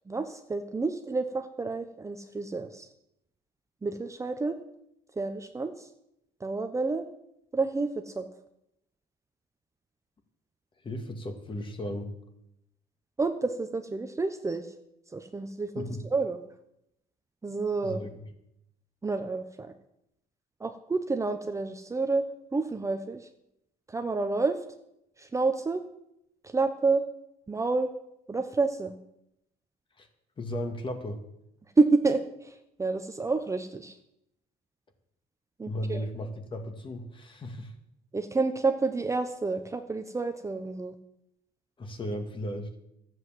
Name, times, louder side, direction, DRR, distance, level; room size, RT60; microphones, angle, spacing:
voice 1, 0.1-2.9 3.8-4.6 5.2-5.9 6.4-7.0 7.5-8.3 13.2-14.7 15.1-15.8 16.1-16.4 17.4-18.0 19.0-19.7 20.6-23.3 23.9-24.6 25.2-25.8 26.4-27.0 27.5-27.9 28.3-28.9 31.8-33.9 35.6-36.1 38.1-40.9, right 3 dB, 20° right, 7 dB, 0.8 m, -29 dB
voice 2, 10.8-12.1 15.8-16.0 17.8-18.1 30.0-30.1 30.4-31.2 35.6-37.7 41.8-42.8, left 1 dB, 30° left, 5 dB, 2.1 m, -35 dB
12.5 x 8.1 x 7.5 m, 0.81 s
cardioid pair, 110°, 17 cm